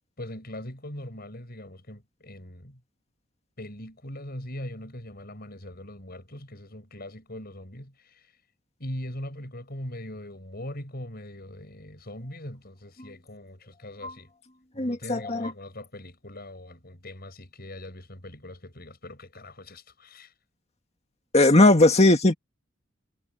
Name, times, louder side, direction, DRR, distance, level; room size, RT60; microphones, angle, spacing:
voice 1, 0.2-2.8 3.6-8.3 8.8-14.3 14.7-20.3, left 1 dB, 50° left, 6.2 m, -41 dB
voice 2, 14.8-15.5 21.3-22.3, left 2 dB, 30° left, 2.0 m, -18 dB
head